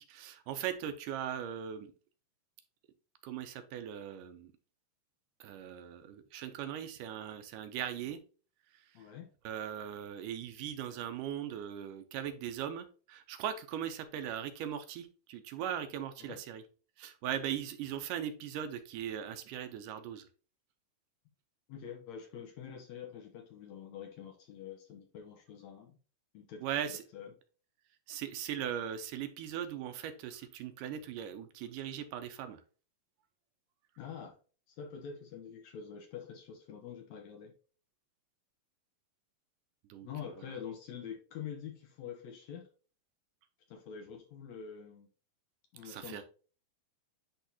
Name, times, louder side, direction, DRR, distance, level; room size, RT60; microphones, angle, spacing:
voice 1, 0.0-1.9 3.2-4.5 5.4-8.2 8.7-8.9 9.4-16.6 17.0-20.3 26.6-27.0 28.1-32.6 39.9-40.3 45.9-46.2, right 9 dB, 80° right, 9 dB, 2.1 m, -39 dB
voice 2, 8.9-9.3 16.2-16.4 21.7-26.0 26.3-26.6 26.9-27.3 34.0-34.4 34.7-37.5 40.0-42.7 43.7-45.1 45.7-46.2, left 7 dB, 70° left, 3 dB, 1.8 m, -46 dB
10.0 x 3.5 x 2.8 m, 0.38 s
omnidirectional pair, 3.9 m